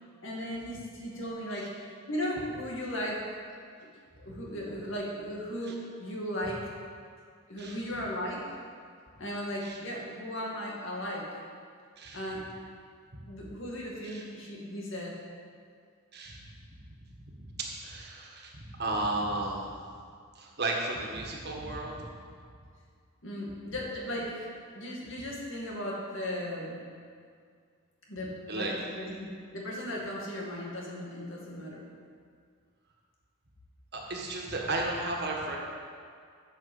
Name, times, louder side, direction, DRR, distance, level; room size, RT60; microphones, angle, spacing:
voice 1, 0.2-1.7 2.1-3.3 4.2-6.7 7.5-8.6 9.2-11.3 12.1-12.5 13.3-15.2 23.2-26.8 28.1-31.8, equal, 60° left, -3 dB, 2.3 m, -36 dB
voice 2, 16.1-16.4 17.4-19.7 20.4-22.0 28.5-28.7 33.9-35.6, right 2 dB, 50° right, -1 dB, 1.7 m, -34 dB
10.5 x 6.8 x 7.3 m, 2.1 s
head